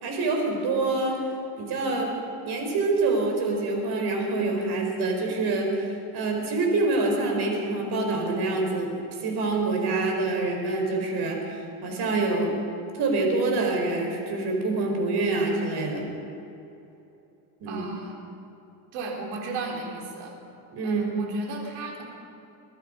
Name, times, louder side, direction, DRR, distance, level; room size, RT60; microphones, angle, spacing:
voice 1, 0.0-1.2 1.6-2.1 2.4-12.5 12.9-16.0 17.6-17.8 20.7-21.0, right 3 dB, 50° right, 2 dB, 4.5 m, -26 dB
voice 2, 17.7-18.2 18.9-20.3 20.8-22.0, right 3 dB, 80° right, 0 dB, 3.8 m, -35 dB
23.0 x 12.0 x 5.2 m, 2.9 s
supercardioid pair, 110°, 48 cm